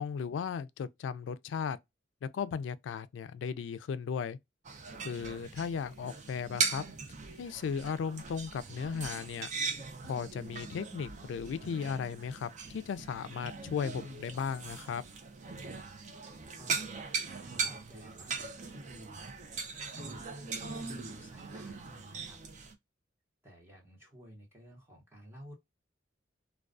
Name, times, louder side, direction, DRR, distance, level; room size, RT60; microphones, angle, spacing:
voice 1, 0.0-1.8 2.2-4.4 5.0-6.8 7.4-9.5 10.0-15.0, left 6 dB, 80° left, 0.3 m, -36 dB
sound 1, 4.6-22.7, right 5 dB, 40° right, 0.5 m, -40 dB
voice 2, 16.5-17.1 17.4-19.4 19.9-22.4 23.4-25.5, equal, 15° right, 1.0 m, -52 dB
2.3 x 2.2 x 2.4 m
head